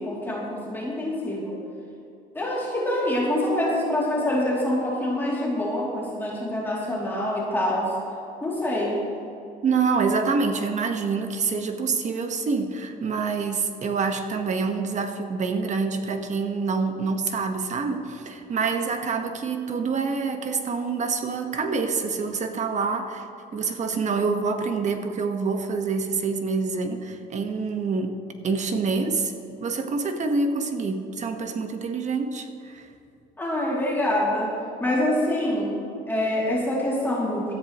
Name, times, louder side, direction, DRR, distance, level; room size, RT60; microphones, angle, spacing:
voice 1, 0.0-1.6 2.3-7.9 8.4-9.1 33.4-37.5, left 1 dB, 10° left, -5 dB, 2.9 m, -26 dB
voice 2, 9.6-23.2 23.5-28.2 28.4-29.3 29.6-32.9, right 4 dB, 45° right, 6 dB, 1.4 m, -26 dB
18.5 x 13.5 x 3.1 m, 2.7 s
cardioid pair, 110°, 17 cm